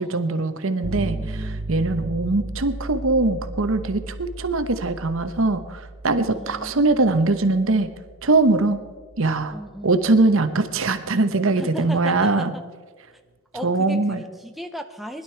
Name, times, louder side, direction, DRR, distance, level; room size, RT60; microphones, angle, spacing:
voice 1, 0.0-7.9 8.2-8.8 9.2-9.5 9.8-12.5 13.6-14.2, right 3 dB, 65° right, 10 dB, 1.0 m, -21 dB
sound 1, 0.8-10.7, right 2 dB, 40° right, 1.5 m, -35 dB
voice 2, 1.0-1.6 6.3-6.7 9.5-10.0 11.6-12.6 13.1-13.2 13.5-15.2, equal, ahead, 5 dB, 0.5 m, -36 dB
20.0 x 11.5 x 4.5 m, 1.5 s
head